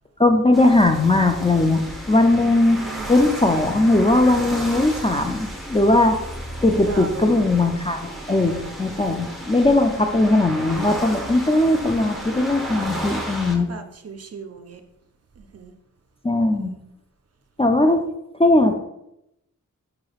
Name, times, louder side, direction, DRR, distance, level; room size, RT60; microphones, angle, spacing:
voice 1, 0.2-2.8 3.1-6.2 6.6-13.7 16.2-16.7 17.6-18.0 18.4-18.7, left 2 dB, 20° left, 5 dB, 0.3 m, -19 dB
sound 1, 0.5-13.6, right 1 dB, ahead, 0.8 m, -33 dB
voice 2, 2.3-3.1 6.7-7.5 8.0-8.8 13.5-14.8 15.4-15.7 16.6-16.8, right 4 dB, 50° right, 7 dB, 0.5 m, -38 dB
4.7 x 3.2 x 2.3 m, 0.84 s
cardioid pair, 55°, 33 cm